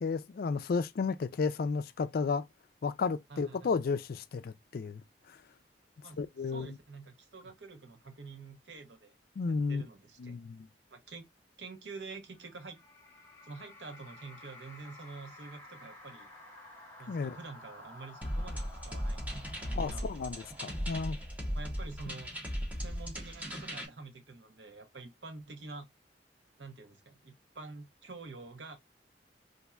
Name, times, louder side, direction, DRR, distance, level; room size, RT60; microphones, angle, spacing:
voice 1, 0.0-2.5 2.8-5.4 6.2-6.8 9.4-9.8 10.2-10.7 17.1-17.4 19.7-21.2, left 4 dB, 55° left, 0.4 m, -33 dB
voice 2, 3.3-3.7 6.0-6.2 6.5-9.1 9.5-10.4 10.9-11.3 11.6-12.8 13.4-16.3 17.0-19.3 19.6-20.3 21.5-22.4 22.8-25.9 26.6-28.8, right 3 dB, 80° right, 0.9 m, -47 dB
sound 1, 12.3-22.0, left 1 dB, 10° left, 1.9 m, -53 dB
sound 2, 18.2-23.9, equal, 10° right, 0.9 m, -37 dB
4.2 x 2.6 x 2.3 m
head